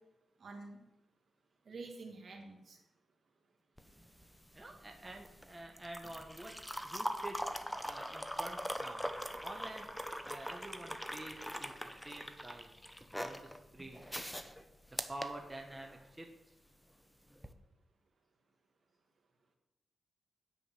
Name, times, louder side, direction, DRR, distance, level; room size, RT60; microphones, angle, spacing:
voice 1, 0.4-0.8 1.7-2.8, right 3 dB, 55° right, 2 dB, 2.4 m, -48 dB
sound 1, 3.8-16.1 17.3-17.5, equal, 5° left, 0.8 m, -42 dB
voice 2, 4.5-6.5 6.8-7.4 7.8-9.1 9.4-9.9 10.2-12.7 13.2-14.1 15.1-16.3, right 1 dB, 15° right, 1 dB, 1.1 m, -48 dB
9.7 x 5.1 x 7.7 m, 0.94 s
cardioid pair, 85°, 0 cm